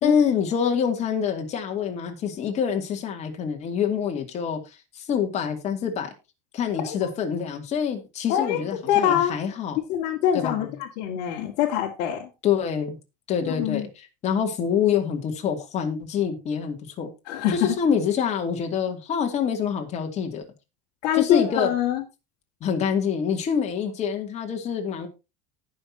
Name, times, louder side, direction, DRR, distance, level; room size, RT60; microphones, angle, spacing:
voice 1, 0.0-4.6 4.9-6.1 6.5-9.8 10.3-10.7 12.4-13.0 13.3-17.1 17.5-20.4 21.1-21.7 22.6-25.1, left 7 dB, 35° left, 4 dB, 2.5 m, -26 dB
voice 2, 8.3-9.3 9.8-12.3 13.5-13.9 17.3-17.7 21.0-22.0, left 10 dB, 55° left, -2 dB, 2.0 m, -24 dB
18.5 x 6.3 x 2.8 m, 0.26 s
supercardioid pair, 145°, 20 cm